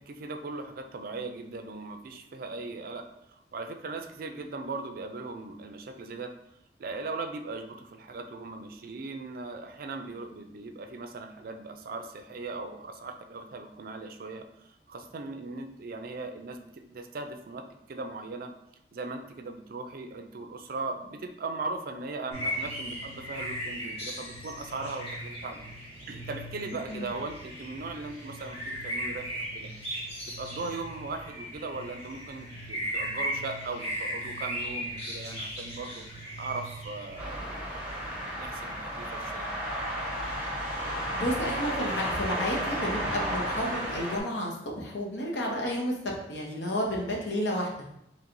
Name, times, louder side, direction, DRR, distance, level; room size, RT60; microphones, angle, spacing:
voice 1, 0.0-3.0 3.3-6.3 6.8-17.6 17.9-18.5 18.9-25.6 26.1-29.7 30.4-36.0 36.4-39.5, right 3 dB, 55° right, 6 dB, 0.4 m, -39 dB
sound 1, 22.3-37.2, equal, 35° left, 1.5 m, -37 dB
sound 2, 37.2-44.2, equal, 10° right, 1.1 m, -33 dB
voice 2, 41.1-47.7, equal, 80° left, -2 dB, 0.9 m, -31 dB
4.4 x 3.1 x 2.6 m, 0.82 s
head